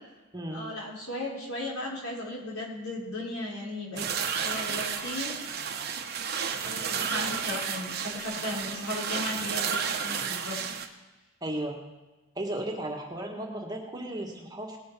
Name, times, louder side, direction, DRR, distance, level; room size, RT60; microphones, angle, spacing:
voice 1, 0.5-4.1 4.4-5.3 6.6-10.6, left 1 dB, 85° left, -3 dB, 4.1 m, -36 dB
sound 1, 4.0-10.9, right 7 dB, 50° right, 1.0 m, -32 dB
voice 2, 11.4-11.8 12.3-14.8, right 1 dB, 20° right, 0 dB, 1.6 m, -35 dB
19.0 x 6.8 x 5.5 m, 1.1 s
head